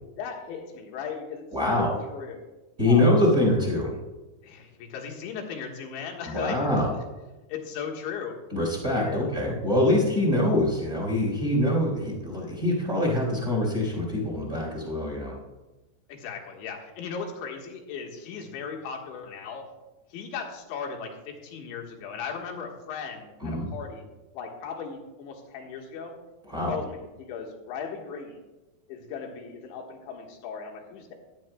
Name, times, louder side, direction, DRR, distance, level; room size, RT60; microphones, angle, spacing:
voice 1, 0.2-2.5 2.9-3.0 4.4-6.6 7.5-8.4 9.0-9.5 16.1-19.6 20.1-24.1 24.3-26.1 26.7-28.4 28.9-31.1, left 6 dB, 90° left, 1 dB, 3.8 m, -37 dB
voice 2, 1.5-2.0 2.8-4.0 6.3-6.9 8.5-15.4 23.4-23.7 26.5-26.7, left 1 dB, 20° right, -2 dB, 3.6 m, -24 dB
16.5 x 12.0 x 2.2 m, 1.1 s
omnidirectional pair, 5.0 m